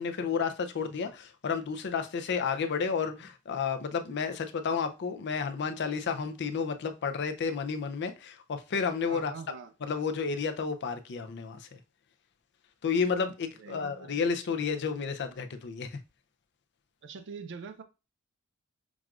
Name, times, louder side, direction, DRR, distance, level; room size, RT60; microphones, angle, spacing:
voice 1, 0.0-9.3 9.8-11.8 12.8-16.0, left 5 dB, 55° left, 0.5 m, -31 dB
voice 2, 9.1-9.7 13.6-14.1 17.0-17.8, right 5 dB, 55° right, 0.4 m, -43 dB
6.0 x 2.4 x 2.4 m
head